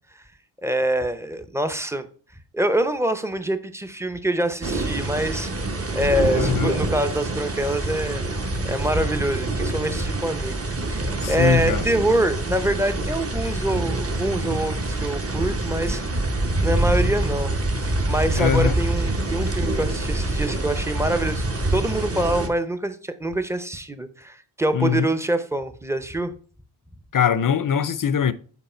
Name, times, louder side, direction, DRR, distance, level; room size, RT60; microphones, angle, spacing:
voice 1, 0.6-2.1 2.5-5.5 5.9-8.4 8.6-26.3, right 1 dB, 5° right, 0.7 m, -25 dB
sound 1, 4.6-22.5, right 2 dB, 35° right, 1.0 m, -25 dB
voice 2, 6.3-6.7 11.2-11.8 18.4-18.8 24.7-25.1 27.1-28.3, left 8 dB, 50° left, 0.6 m, -22 dB
8.1 x 4.7 x 4.3 m
wide cardioid pair, 110°, 43 cm